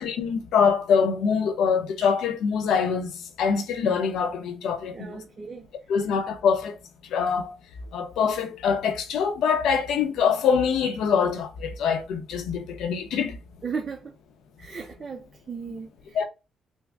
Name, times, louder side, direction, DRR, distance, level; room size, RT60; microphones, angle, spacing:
voice 1, 0.0-5.2 5.9-6.8 7.1-7.6 7.9-13.4 16.1-16.2, left 6 dB, 80° left, 0.7 m, -24 dB
voice 2, 4.9-5.7 13.6-14.2 14.6-16.2, right 5 dB, 35° right, 0.6 m, -36 dB
3.6 x 2.1 x 3.5 m
cardioid pair, 90°, 0 cm